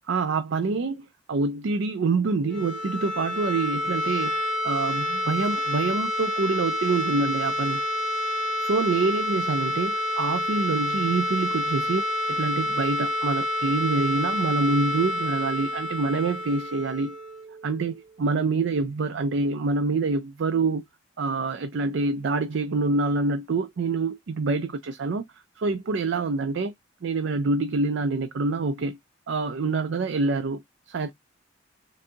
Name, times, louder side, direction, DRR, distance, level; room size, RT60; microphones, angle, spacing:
voice 1, 0.1-4.3 4.6-7.8 8.6-12.0 12.3-17.2 17.6-20.8 21.2-25.2 25.6-26.7 27.0-29.0 29.3-31.1, right 3 dB, 70° right, 0.4 m, -26 dB
sound 1, 2.4-18.2, left 1 dB, 5° right, 1.4 m, -28 dB
3.9 x 2.7 x 3.4 m
head